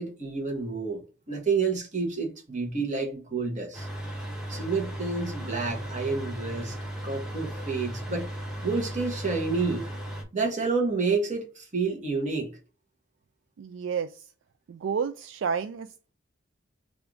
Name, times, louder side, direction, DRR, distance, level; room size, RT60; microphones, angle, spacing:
voice 1, 0.0-3.9 4.5-6.8 7.0-8.3 8.6-9.9 10.3-12.6, right 4 dB, 40° right, 1.2 m, -29 dB
sound 1, 3.7-10.2, right 1 dB, 5° right, 0.9 m, -36 dB
voice 2, 13.6-14.3 14.7-16.1, right 6 dB, 70° right, 0.3 m, -31 dB
3.4 x 2.6 x 4.5 m
head